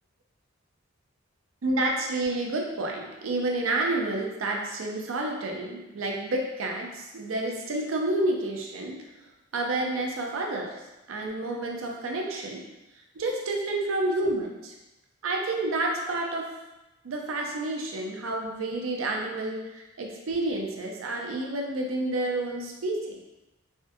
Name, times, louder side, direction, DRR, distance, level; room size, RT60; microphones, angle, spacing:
voice 1, 1.6-9.0 9.5-10.8 11.1-12.7 13.1-14.7 15.2-16.5 17.0-23.2, right 2 dB, 80° right, 0 dB, 0.5 m, -29 dB
3.7 x 2.1 x 2.6 m, 0.99 s
head